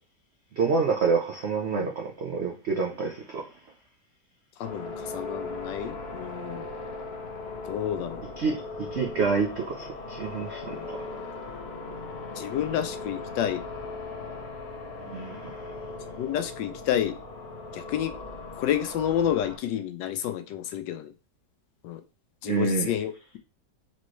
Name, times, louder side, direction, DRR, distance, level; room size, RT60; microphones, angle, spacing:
voice 1, 0.5-3.5 8.4-11.0 15.0-15.7 22.5-22.9, right 4 dB, 75° right, 0.6 m, -28 dB
voice 2, 4.6-6.7 7.6-8.2 10.7-10.9 12.3-13.6 16.2-17.2 17.7-18.1 18.6-21.1 21.8-22.0 22.4-23.4, left 10 dB, 85° left, 1.2 m, -30 dB
sound 1, 4.6-19.6, left 3 dB, 45° left, 0.9 m, -38 dB
4.3 x 3.1 x 3.0 m
omnidirectional pair, 1.9 m